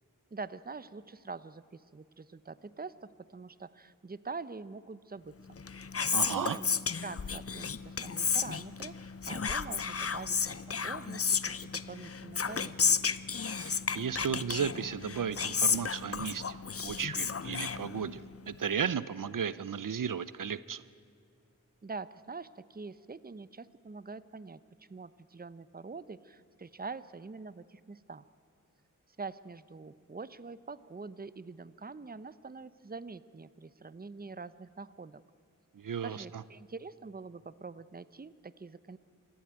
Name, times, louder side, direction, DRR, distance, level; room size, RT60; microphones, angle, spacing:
voice 1, 0.3-5.6 6.3-6.7 7.0-13.0 21.8-24.6 24.9-28.2 29.2-35.2 36.0-39.0, right 4 dB, 30° right, 16 dB, 0.7 m, -45 dB
Whispering, 5.5-18.4, left 6 dB, 45° left, 0.6 m, -33 dB
voice 2, 6.1-6.6 13.4-16.6 16.8-20.8 35.7-36.4, right 7 dB, 75° right, 16 dB, 0.6 m, -35 dB
26.0 x 14.0 x 8.9 m, 2.3 s
wide cardioid pair, 65°, 33 cm